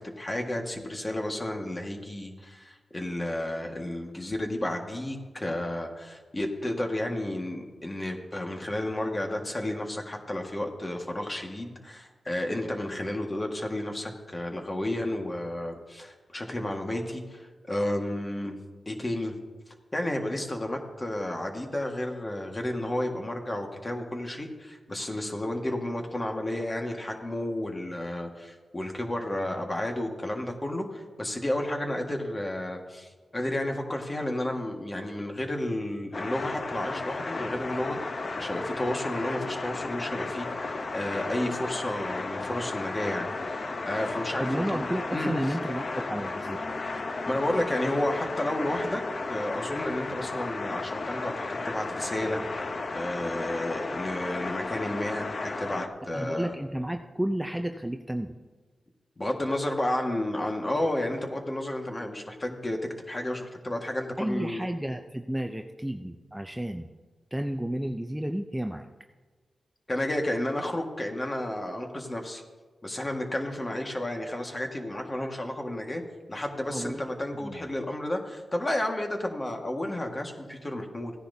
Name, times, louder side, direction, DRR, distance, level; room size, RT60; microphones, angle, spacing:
voice 1, 0.2-18.6 18.8-19.3 19.9-38.0 38.4-45.3 47.3-49.0 49.3-52.4 52.9-56.5 59.2-62.8 63.1-64.6 69.9-72.4 72.8-76.0 76.3-81.1, left 1 dB, 25° left, 2 dB, 1.7 m, -32 dB
sound 1, 36.1-55.9, left 3 dB, 55° left, 0.8 m, -34 dB
voice 2, 44.4-46.6 56.1-58.3 64.2-66.9 67.3-68.9 76.7-77.0 77.4-77.6, right 1 dB, 10° right, 5 dB, 0.5 m, -32 dB
16.5 x 10.0 x 2.8 m, 1.4 s
cardioid pair, 70°, 0 cm